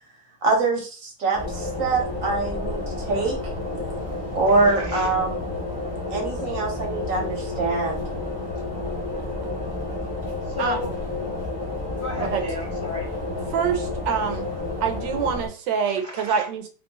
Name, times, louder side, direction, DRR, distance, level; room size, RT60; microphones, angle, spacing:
voice 1, 0.4-2.8 3.1-3.4 4.3-5.4 6.1-8.0, right 3 dB, 55° right, 1 dB, 1.0 m, -24 dB
sound 1, 1.3-15.5, left 2 dB, 15° left, 0.9 m, -30 dB
voice 2, 4.5-5.1 9.2-9.3 10.6-11.3 12.0-13.1 15.8-16.5, left 3 dB, 55° left, -4 dB, 0.6 m, -34 dB
voice 3, 13.5-14.5 14.8-16.7, right 7 dB, 75° right, 6 dB, 1.2 m, -25 dB
3.0 x 2.9 x 2.7 m, 0.36 s
omnidirectional pair, 2.0 m